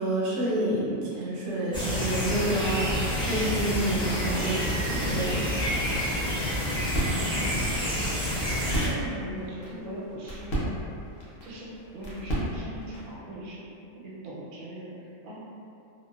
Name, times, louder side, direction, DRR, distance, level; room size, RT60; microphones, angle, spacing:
voice 1, 0.0-5.4, right 1 dB, 60° right, -8 dB, 0.8 m, -29 dB
sound 1, 1.7-8.9, equal, 5° left, 0.3 m, -28 dB
sound 2, 2.3-13.2, right 1 dB, 70° left, 1.1 m, -37 dB
voice 2, 6.9-7.8 8.6-10.7 11.4-11.7 11.9-13.6 14.0-15.4, right 1 dB, 85° right, -6 dB, 1.0 m, -39 dB
2.7 x 2.0 x 2.2 m, 2.7 s
omnidirectional pair, 1.5 m